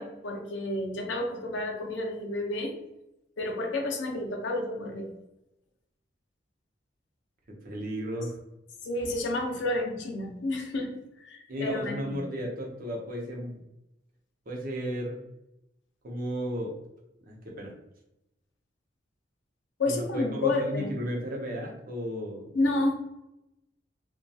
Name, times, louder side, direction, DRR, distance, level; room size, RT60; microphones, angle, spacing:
voice 1, 0.0-2.7 3.4-5.1 8.8-12.2 19.8-20.9 22.5-22.9, left 2 dB, 75° left, 2 dB, 0.5 m, -30 dB
voice 2, 7.5-8.4 11.5-13.6 14.5-15.2 16.0-16.7 17.2-17.7 19.9-22.5, equal, 50° right, -1 dB, 0.6 m, -34 dB
2.7 x 2.2 x 2.3 m, 0.89 s
head